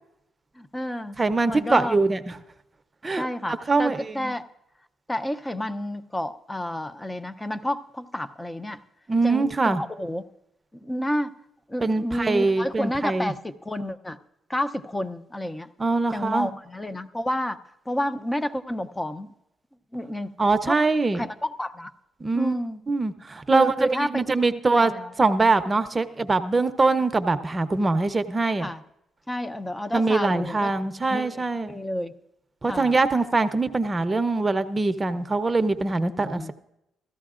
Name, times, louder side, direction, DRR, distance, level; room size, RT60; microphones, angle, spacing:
voice 1, 0.6-1.2 1.5-2.0 3.2-4.4 5.1-8.8 9.2-10.2 10.7-11.3 11.7-14.2 14.5-15.7 16.1-17.6 17.9-19.3 19.9-20.3 20.7-20.8 21.1-21.9 22.3-22.8 23.5-25.1 28.6-28.8 29.3-30.7 31.1-32.1 32.7-32.9 36.2-36.5, left 1 dB, 15° left, 11 dB, 0.7 m, -30 dB
voice 2, 1.2-2.4 3.0-3.3 3.7-4.3 9.1-9.8 11.8-13.3 15.8-16.5 20.4-21.3 22.2-22.5 22.9-24.9 25.2-28.7 29.9-31.8 32.6-36.5, right 3 dB, 25° right, 10 dB, 0.7 m, -23 dB
16.5 x 13.5 x 2.5 m, 0.83 s
cardioid pair, 90°, 0 cm